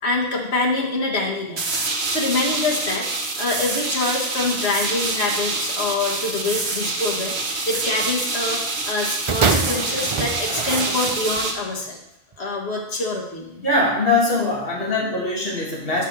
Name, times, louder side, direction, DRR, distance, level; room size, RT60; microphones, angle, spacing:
voice 1, 0.0-1.7 2.1-3.1 3.4-8.6 8.9-12.0 12.4-13.7, left 3 dB, 85° left, -2 dB, 1.8 m, -25 dB
sound 1, 1.6-11.5, right 3 dB, 75° right, 1.2 m, -26 dB
sound 2, 9.3-11.5 12.3-12.4, right 4 dB, 40° right, 0.5 m, -24 dB
voice 2, 13.6-16.0, left 2 dB, 65° left, -4 dB, 2.3 m, -21 dB
5.7 x 5.2 x 6.2 m, 0.85 s
omnidirectional pair, 1.1 m